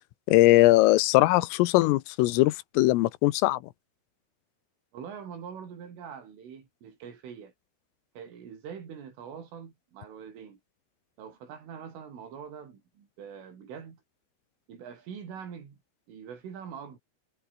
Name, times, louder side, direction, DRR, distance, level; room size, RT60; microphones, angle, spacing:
voice 1, 0.3-3.6, left 18 dB, 90° left, 3.6 m, -20 dB
voice 2, 4.9-7.5 8.2-10.6 11.2-14.0 14.7-15.8 16.1-17.0, right 7 dB, 75° right, 7.1 m, -43 dB
omnidirectional pair, 5.8 m